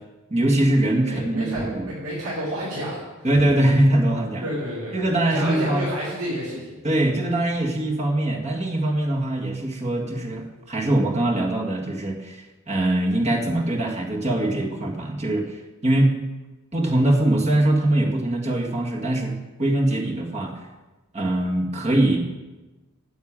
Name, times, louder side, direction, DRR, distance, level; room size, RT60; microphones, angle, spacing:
voice 1, 0.3-1.9 3.2-4.4 4.9-5.9 6.8-15.5 15.8-16.1 16.7-20.5 21.1-22.2, right 1 dB, 30° right, 0 dB, 1.8 m, -22 dB
voice 2, 1.0-3.0 3.4-3.5 4.4-6.7, equal, 70° right, -8 dB, 4.6 m, -30 dB
10.0 x 7.8 x 8.8 m, 1.1 s
head